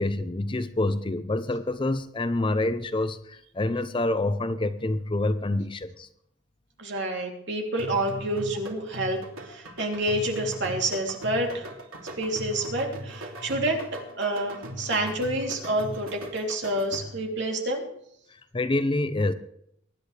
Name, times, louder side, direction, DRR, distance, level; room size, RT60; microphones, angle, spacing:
voice 1, 0.0-6.1 18.3-19.3, left 2 dB, 25° left, 11 dB, 0.6 m, -27 dB
voice 2, 6.8-9.2 9.4-11.7 12.2-13.8 14.2-17.9, right 1 dB, 55° right, 1 dB, 3.1 m, -28 dB
sound 1, 7.8-17.3, right 1 dB, 90° right, 2.8 m, -39 dB
23.5 x 10.5 x 3.3 m, 0.73 s
head